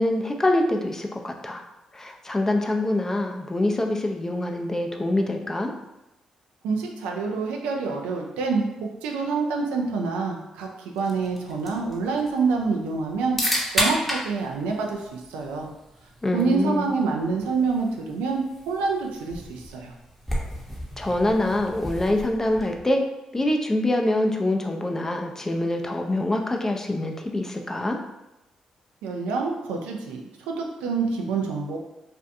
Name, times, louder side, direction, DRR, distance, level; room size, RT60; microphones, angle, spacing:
voice 1, 0.0-1.6 1.9-5.7 16.2-16.8 21.0-23.0 23.3-28.0, left 1 dB, 20° left, 3 dB, 0.4 m, -25 dB
voice 2, 6.6-13.4 13.7-15.7 16.3-19.9 29.0-31.8, right 4 dB, 85° right, 1 dB, 0.3 m, -27 dB
sound 1, 11.0-22.9, equal, ahead, 0.7 m, -33 dB
2.5 x 2.2 x 2.5 m, 0.93 s
supercardioid pair, 50°, 2 cm